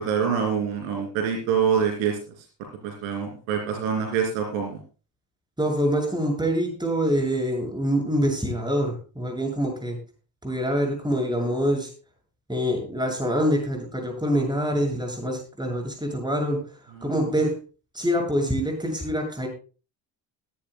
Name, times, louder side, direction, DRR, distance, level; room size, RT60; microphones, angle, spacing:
voice 1, 0.0-2.2 2.8-4.8 17.0-17.1, right 7 dB, 75° right, 3 dB, 3.0 m, -25 dB
voice 2, 5.6-10.0 10.4-11.9 12.5-17.6 17.9-19.5, equal, 10° right, 2 dB, 7.0 m, -25 dB
21.0 x 11.0 x 2.2 m, 0.35 s
hypercardioid pair, 50°, 49 cm